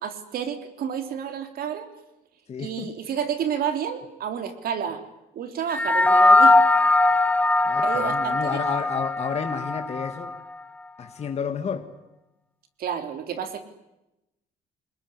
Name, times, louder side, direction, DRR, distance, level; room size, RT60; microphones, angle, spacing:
voice 1, 0.0-1.9 2.6-5.0 5.3-6.6 7.8-8.6 12.8-13.6, right 8 dB, 65° right, 3.4 m, -30 dB
voice 2, 2.5-2.9 7.6-10.4 11.0-11.9, left 7 dB, 40° left, 2.2 m, -31 dB
sound 1, 5.7-10.4, left 2 dB, 10° left, 1.2 m, -20 dB
28.5 x 21.0 x 9.9 m
cardioid pair, 110°, 17 cm